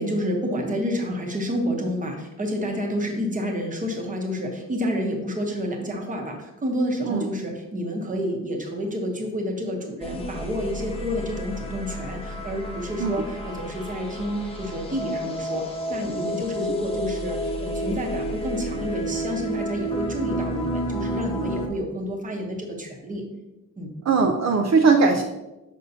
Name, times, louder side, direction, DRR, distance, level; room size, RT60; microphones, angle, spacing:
voice 1, 0.0-23.2 23.8-23.9, equal, 25° right, 1 dB, 0.9 m, -29 dB
sound 1, 10.0-21.7, equal, 20° left, 0.6 m, -31 dB
voice 2, 24.1-25.2, right 4 dB, 55° right, 3 dB, 0.5 m, -19 dB
6.6 x 5.4 x 2.7 m, 1.0 s
wide cardioid pair, 175°, 32 cm